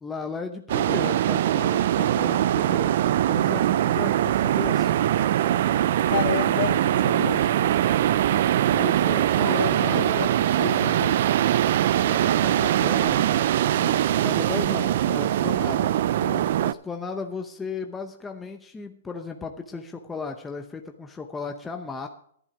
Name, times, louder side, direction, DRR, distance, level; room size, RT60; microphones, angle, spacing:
voice 1, 0.0-2.9 3.3-4.9 8.7-10.3 12.0-15.9 16.6-22.1, left 4 dB, 10° left, 4 dB, 0.8 m, -35 dB
sound 1, 0.7-16.7, right 12 dB, 55° right, 0.4 m, -22 dB
voice 2, 6.1-7.8 9.4-11.3 16.2-16.5, left 8 dB, 60° left, 4 dB, 2.3 m, -31 dB
11.0 x 11.0 x 4.8 m, 0.64 s
hypercardioid pair, 150°, 0 cm